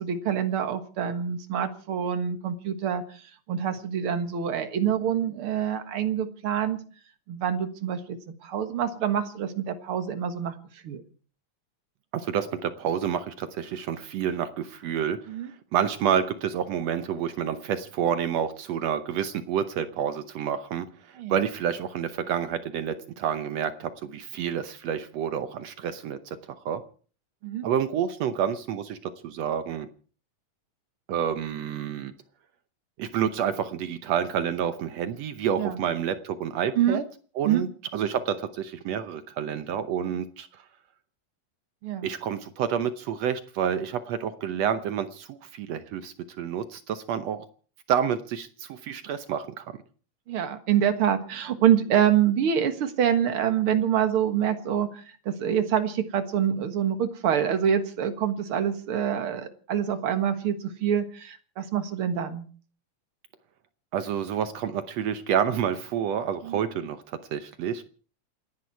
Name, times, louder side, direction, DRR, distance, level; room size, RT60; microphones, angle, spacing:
voice 1, 0.0-3.0 3.5-6.8 7.3-10.5 10.8-11.0 15.3-15.5 21.2-21.3 27.4-27.7 35.6-35.8 36.8-37.0 37.4-37.7 41.8-42.1 50.3-62.5 66.4-66.6, right 9 dB, 50° right, 8 dB, 1.9 m, -26 dB
voice 2, 12.1-15.2 15.7-26.8 27.6-29.9 31.1-32.1 33.0-37.0 37.4-40.5 42.0-47.4 47.9-49.7 63.9-67.8, right 8 dB, 70° right, 11 dB, 1.6 m, -29 dB
28.0 x 10.5 x 4.6 m, 0.41 s
omnidirectional pair, 3.9 m